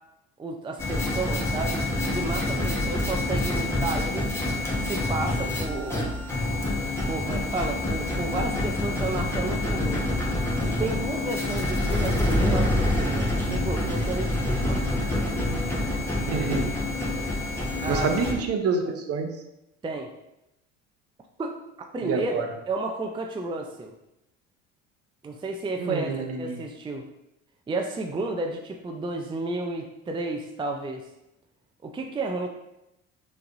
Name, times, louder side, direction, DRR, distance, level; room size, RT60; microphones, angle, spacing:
voice 1, 0.4-4.3 4.8-6.0 7.1-10.1 10.6-15.5 17.8-18.1 19.8-20.1 21.4-21.6 21.9-23.9 25.2-27.0 27.7-31.0 31.8-32.5, right 2 dB, 15° right, 3 dB, 0.5 m, -32 dB
sound 1, 0.8-18.3, left 1 dB, 5° left, 1.2 m, -27 dB
voice 2, 16.3-16.7 17.9-19.3 22.0-22.5 25.8-26.6, right 4 dB, 45° right, 4 dB, 0.8 m, -27 dB
5.7 x 3.2 x 2.5 m, 0.88 s
hypercardioid pair, 65°, 35 cm